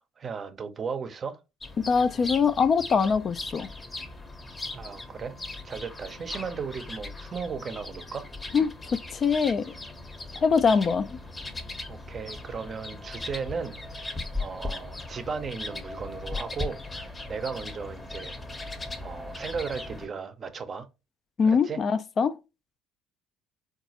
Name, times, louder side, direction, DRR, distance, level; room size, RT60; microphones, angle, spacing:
voice 1, 0.0-1.4 4.7-5.4 5.6-8.3 11.9-18.7 19.0-20.9 21.4-21.8, right 5 dB, 40° right, 0.6 m, -36 dB
sound 1, 1.6-20.1, left 2 dB, 20° left, 0.7 m, -38 dB
voice 2, 1.9-3.7 8.5-8.7 9.1-9.7 10.4-11.2 21.4-22.4, left 5 dB, 40° left, 0.3 m, -23 dB
3.8 x 2.3 x 2.8 m
hypercardioid pair, 60°, 0 cm